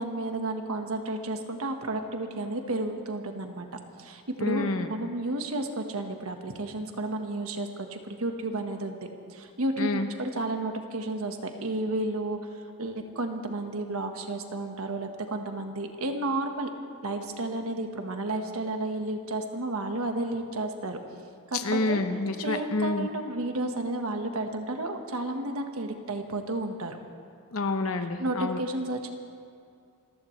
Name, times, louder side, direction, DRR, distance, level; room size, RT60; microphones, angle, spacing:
voice 1, 0.0-3.7 4.0-12.4 12.8-16.7 17.0-21.0 21.5-21.6 21.9-22.0 22.4-27.0 28.2-29.1, right 2 dB, 80° right, 5 dB, 1.4 m, -32 dB
voice 2, 4.4-4.9 9.8-10.1 21.5-23.1 27.5-28.6, left 3 dB, 70° left, 7 dB, 0.9 m, -28 dB
27.5 x 15.0 x 3.2 m, 2.4 s
head